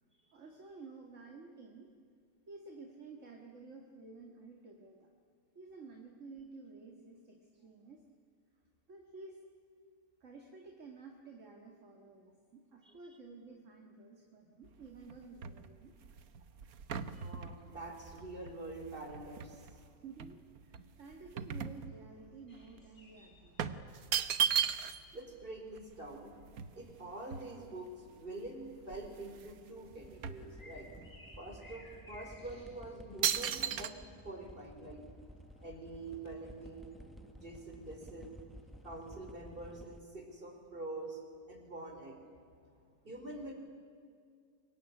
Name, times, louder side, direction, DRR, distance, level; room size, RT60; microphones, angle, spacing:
voice 1, 0.3-1.9 2.5-5.1 5.5-8.0 8.9-9.4 10.2-16.0 20.0-23.8, right 4 dB, 55° right, 2 dB, 2.4 m, -52 dB
sound 1, 14.6-19.8 20.2-22.4 22.7-22.9 23.6-25.2 25.5-25.6 25.8-27.9 28.5-28.6 28.8-29.6 29.9-31.1 31.7-31.8 32.4-32.7 33.2-33.9, right 8 dB, 75° right, 1.5 m, -37 dB
voice 2, 17.1-20.0 25.1-26.3 26.7-30.9 31.4-34.0 34.2-35.0 35.6-37.0 37.4-38.5 38.8-41.2 41.5-42.2 43.0-43.5, right 2 dB, 35° right, 3 dB, 4.6 m, -46 dB
sound 2, 22.5-39.3, left 1 dB, 50° left, 5.1 m, -63 dB
sound 3, 29.7-40.0, equal, ahead, 1.3 m, -54 dB
25.5 x 22.5 x 10.0 m, 2.2 s
omnidirectional pair, 1.5 m